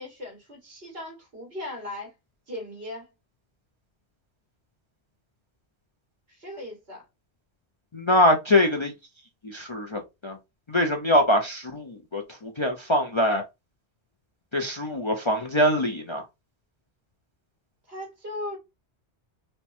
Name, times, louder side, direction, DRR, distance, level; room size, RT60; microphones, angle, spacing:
voice 1, 0.0-2.1 2.5-3.1 6.3-7.0 17.9-18.6, left 1 dB, 65° right, 2.4 m, -38 dB
voice 2, 7.9-8.9 9.4-10.4 10.7-13.4 14.5-16.2, left 1 dB, 35° left, 0.5 m, -23 dB
4.4 x 2.3 x 4.3 m
omnidirectional pair, 1.1 m